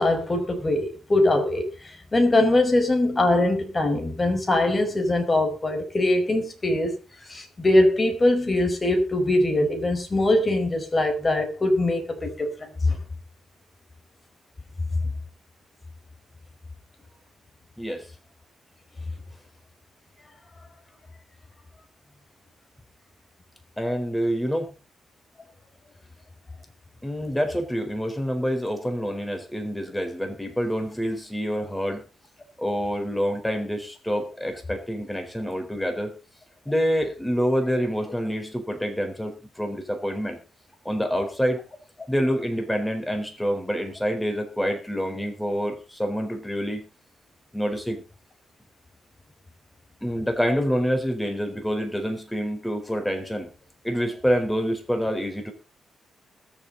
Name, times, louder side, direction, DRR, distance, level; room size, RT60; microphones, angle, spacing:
voice 1, 0.0-1.7 2.1-7.0 7.3-12.5 12.8-13.0, left 1 dB, 25° left, 4.9 m, -22 dB
voice 2, 23.8-24.7 27.0-32.0 32.6-36.2 36.7-40.4 40.8-41.6 42.1-46.9 47.5-48.0 50.0-53.5 53.8-55.5, equal, 5° left, 4.2 m, -27 dB
21.0 x 7.4 x 4.0 m
cardioid pair, 80°, 0 cm